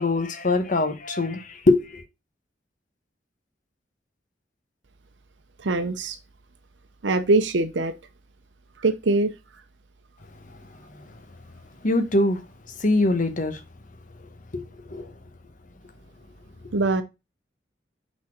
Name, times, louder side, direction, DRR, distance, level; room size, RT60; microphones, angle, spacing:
voice 1, 0.0-2.0 10.3-10.7 11.0-11.1 11.8-12.5 12.8-13.6 14.5-15.1, left 2 dB, 45° left, 1.0 m, -23 dB
voice 2, 5.6-6.2 7.0-7.9 8.8-9.3 16.7-17.0, right 2 dB, 85° right, 0.7 m, -22 dB
6.1 x 4.1 x 4.4 m
head